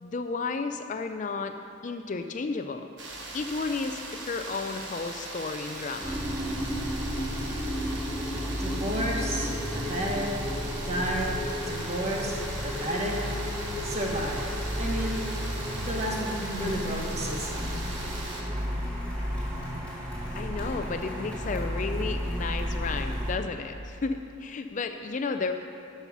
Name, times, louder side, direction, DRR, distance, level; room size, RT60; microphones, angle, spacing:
voice 1, 0.0-1.5 1.8-2.9 3.3-6.2 20.3-25.5, left 4 dB, 40° left, 7 dB, 0.4 m, -32 dB
sound 1, 3.0-18.4, right 2 dB, 60° right, 1.4 m, -40 dB
sound 2, 6.0-23.4, equal, 15° right, 0.7 m, -33 dB
voice 2, 8.6-10.4 10.8-11.3 11.7-13.2 13.8-14.5 14.8-15.2 15.8-17.8, right 1 dB, 35° right, -1 dB, 1.4 m, -32 dB
sound 3, 11.5-23.3, equal, 5° left, 2.1 m, -46 dB
12.5 x 5.5 x 6.0 m, 2.6 s
head